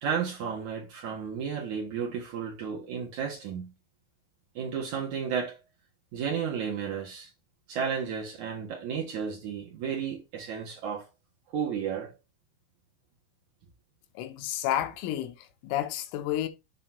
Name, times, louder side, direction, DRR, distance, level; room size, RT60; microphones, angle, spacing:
voice 1, 0.0-3.7 4.6-5.6 6.1-7.3 7.7-11.1 11.5-12.1, right 7 dB, 70° right, 1.8 m, -33 dB
voice 2, 14.2-16.5, left 12 dB, 90° left, 3.5 m, -31 dB
8.5 x 3.9 x 4.5 m
omnidirectional pair, 5.6 m